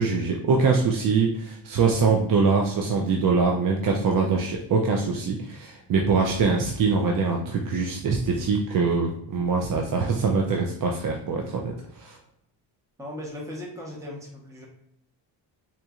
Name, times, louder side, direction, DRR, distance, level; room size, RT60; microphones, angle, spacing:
voice 1, 0.0-11.7 12.0-12.2, right 4 dB, 45° right, 1 dB, 0.5 m, -23 dB
voice 2, 13.0-14.7, left 1 dB, 5° right, -2 dB, 0.8 m, -37 dB
3.9 x 2.9 x 2.3 m, 0.74 s
cardioid pair, 95°, 45 cm